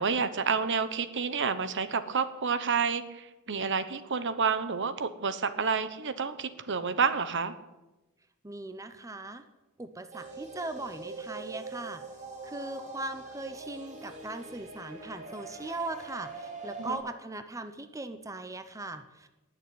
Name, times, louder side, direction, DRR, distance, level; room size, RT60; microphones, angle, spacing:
voice 1, 0.0-7.5 16.8-17.0, right 5 dB, 60° right, 12 dB, 1.0 m, -29 dB
voice 2, 8.4-9.4 9.8-12.0 12.4-19.3, right 2 dB, 15° right, 9 dB, 0.8 m, -39 dB
sound 1, 10.1-17.0, right 3 dB, 35° right, 2.9 m, -43 dB
19.0 x 6.9 x 9.5 m, 1.0 s
head